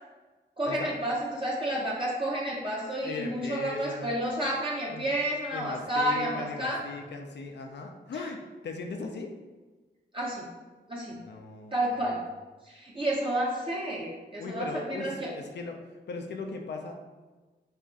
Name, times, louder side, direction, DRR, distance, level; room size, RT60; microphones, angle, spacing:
voice 1, 0.6-6.8 8.1-8.2 10.1-10.5 10.9-11.2 11.7-12.2 12.6-15.3, right 1 dB, 25° right, -5 dB, 0.6 m, -30 dB
voice 2, 3.0-4.3 4.9-5.1 5.5-9.3 11.1-11.8 14.4-15.8 16.1-17.0, left 4 dB, 65° left, 3 dB, 0.4 m, -38 dB
2.4 x 2.3 x 3.7 m, 1.2 s
cardioid pair, 45°, 19 cm